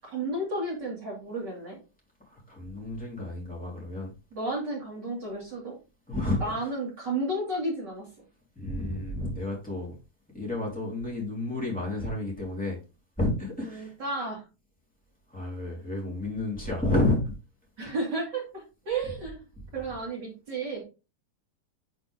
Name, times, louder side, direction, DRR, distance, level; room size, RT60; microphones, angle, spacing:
voice 1, 0.0-1.8 4.3-5.8 6.4-8.1 13.7-14.4 17.8-19.4 19.7-20.8, right 2 dB, 35° right, -3 dB, 1.9 m, -32 dB
voice 2, 2.2-4.1 6.1-6.5 8.5-10.0 10.3-12.8 13.2-13.9 15.3-17.3 17.8-17.9, left 2 dB, ahead, -3 dB, 2.7 m, -30 dB
8.5 x 4.4 x 3.5 m, 0.30 s
omnidirectional pair, 4.7 m